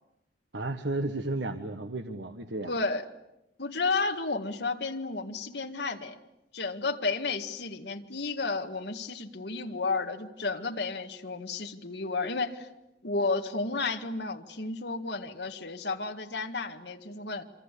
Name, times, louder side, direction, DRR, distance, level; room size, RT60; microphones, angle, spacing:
voice 1, 0.5-2.7, right 2 dB, 75° right, 8 dB, 1.4 m, -33 dB
voice 2, 2.6-3.0 3.6-6.2 6.5-12.7 13.0-17.4, left 3 dB, 65° left, 5 dB, 2.0 m, -32 dB
27.0 x 25.0 x 8.5 m, 0.93 s
head